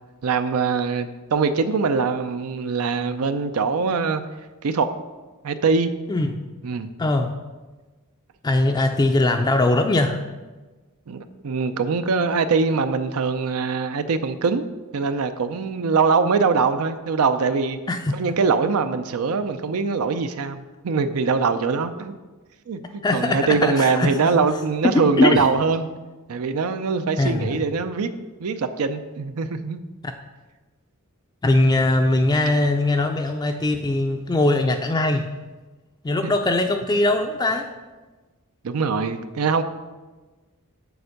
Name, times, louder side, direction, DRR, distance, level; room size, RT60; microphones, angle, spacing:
voice 1, 0.2-4.2 4.6-4.9 5.4-5.9 6.6-6.9 11.1-14.7 14.9-17.8 18.1-22.2 22.7-25.9 26.3-28.1 28.4-29.8 36.2-36.3 38.6-39.6, right 5 dB, 85° right, 10 dB, 0.5 m, -23 dB
voice 2, 7.0-7.3 8.4-10.2 17.9-18.2 23.0-24.4 25.2-25.5 27.2-27.6 31.4-35.3 36.0-37.7, left 2 dB, 20° left, 4 dB, 0.4 m, -21 dB
7.0 x 4.4 x 6.4 m, 1.2 s
head